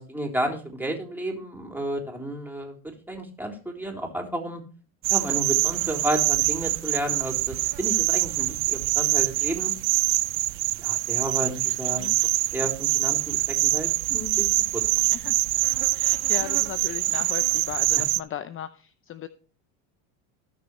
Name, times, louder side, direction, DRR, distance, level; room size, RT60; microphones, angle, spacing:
voice 1, 0.0-4.6 5.1-9.7 10.8-12.1 12.5-14.5 14.7-14.8, right 1 dB, 5° right, 1 dB, 3.5 m, -32 dB
sound 1, 5.0-18.2, right 21 dB, 80° right, 0.6 m, -24 dB
voice 2, 15.9-19.3, left 10 dB, 30° left, 12 dB, 0.7 m, -36 dB
18.5 x 6.3 x 3.2 m, 0.37 s
supercardioid pair, 95°, 40 cm